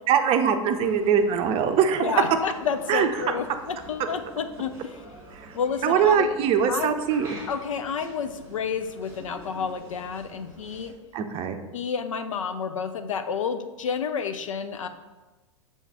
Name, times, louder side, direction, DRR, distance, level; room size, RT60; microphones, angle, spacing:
voice 1, 0.1-2.1 2.9-3.1 5.4-5.5 5.8-7.4 11.1-11.6, right 7 dB, 35° right, 7 dB, 0.6 m, -22 dB
sound 1, 0.7-10.9, right 2 dB, 15° right, 2.0 m, -47 dB
voice 2, 2.0-5.0 5.5-6.3 6.6-7.0 7.5-10.9 11.7-14.9, left 6 dB, 75° left, 8 dB, 0.6 m, -30 dB
7.3 x 3.5 x 4.2 m, 1.2 s
figure-of-eight pair, 95°, 17 cm